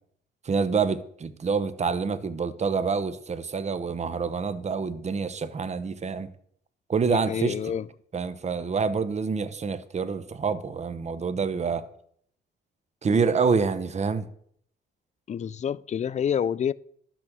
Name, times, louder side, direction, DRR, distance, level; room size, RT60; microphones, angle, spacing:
voice 1, 0.4-6.3 6.9-7.5 8.1-11.9 13.0-14.3, right 5 dB, 35° right, 0.9 m, -27 dB
voice 2, 7.1-7.9 15.3-16.7, left 8 dB, 35° left, 0.4 m, -28 dB
12.0 x 6.4 x 6.1 m
cardioid pair, 90°, 20 cm